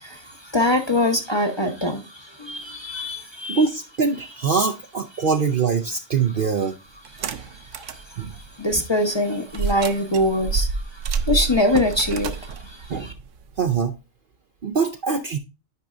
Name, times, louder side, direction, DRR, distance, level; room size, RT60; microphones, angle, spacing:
voice 1, 0.0-3.6 7.1-13.1, left 1 dB, 25° left, 0.8 m, -24 dB
voice 2, 3.5-6.8 8.2-8.3 12.9-13.1 13.6-13.9 14.6-15.4, right 5 dB, 55° right, 0.7 m, -23 dB
sound 1, 7.1-8.1 8.5-8.6 9.5-13.8, right 5 dB, 75° right, 1.1 m, -28 dB
9.4 x 5.3 x 2.4 m
omnidirectional pair, 1.3 m